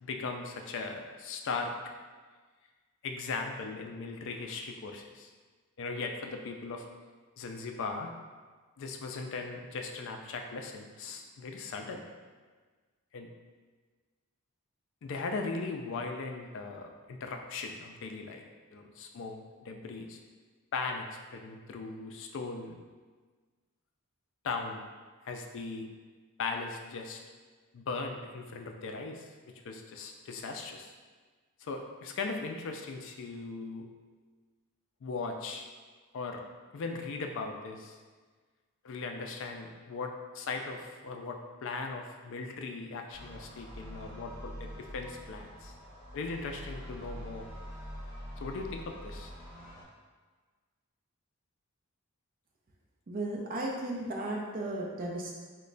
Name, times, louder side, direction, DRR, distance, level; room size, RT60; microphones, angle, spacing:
voice 1, 0.0-1.7 3.0-5.3 5.8-6.9 7.4-8.1 8.8-12.0 13.1-13.3 15.0-18.4 18.7-20.2 20.7-22.7 24.4-24.8 25.2-25.9 26.4-27.2 27.7-29.3 29.6-30.9 31.6-33.8 35.0-35.7 36.1-36.4 36.7-38.0 38.8-45.7 46.1-47.5 48.4-49.3, left 4 dB, 55° left, 4 dB, 0.3 m, -38 dB
sound 1, 43.1-49.8, equal, 20° right, 1.3 m, -45 dB
voice 2, 53.1-55.4, right 1 dB, 40° right, -2 dB, 0.4 m, -35 dB
3.1 x 2.2 x 3.8 m, 1.4 s
head